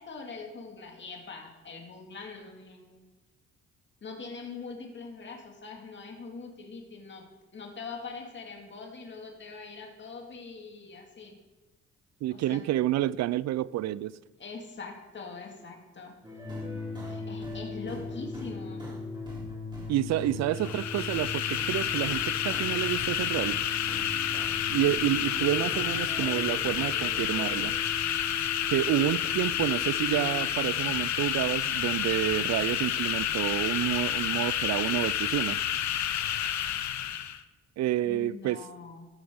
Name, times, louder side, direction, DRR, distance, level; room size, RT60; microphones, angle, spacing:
voice 1, 0.0-3.0 4.0-7.3 7.5-11.3 12.3-12.6 14.4-16.1 16.9-18.8 38.0-39.1, left 4 dB, 40° left, 2.1 m, -43 dB
voice 2, 12.2-14.1 19.9-23.6 24.7-27.7 28.7-35.6 37.8-38.6, right 13 dB, 60° right, 0.4 m, -29 dB
sound 1, 16.2-21.3 21.6-25.0 25.3-27.7, equal, 15° right, 3.8 m, -44 dB
sound 2, 16.4-30.5, left 3 dB, 15° left, 1.0 m, -40 dB
sound 3, 20.5-37.4, left 10 dB, 65° left, 0.7 m, -30 dB
14.0 x 6.0 x 5.1 m
cardioid pair, 90°, 30 cm